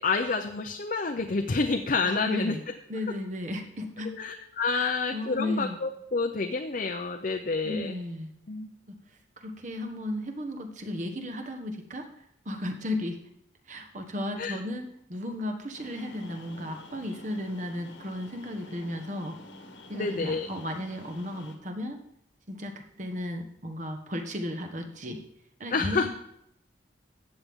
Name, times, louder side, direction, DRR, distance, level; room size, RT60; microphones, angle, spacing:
voice 1, 0.0-2.6 4.1-8.0 8.5-8.7 14.4-14.6 19.9-20.5 25.7-26.1, left 4 dB, 45° left, 4 dB, 0.6 m, -28 dB
voice 2, 2.0-2.6 2.9-4.1 4.7-5.8 7.6-8.3 8.9-9.0 9.4-12.1 12.4-13.2 13.7-19.4 19.9-22.0 22.5-25.2 25.6-26.1, left 1 dB, 40° right, 4 dB, 1.3 m, -34 dB
sound 1, 15.7-21.5, left 2 dB, 85° left, 1.6 m, -49 dB
14.0 x 8.6 x 3.7 m, 0.74 s
head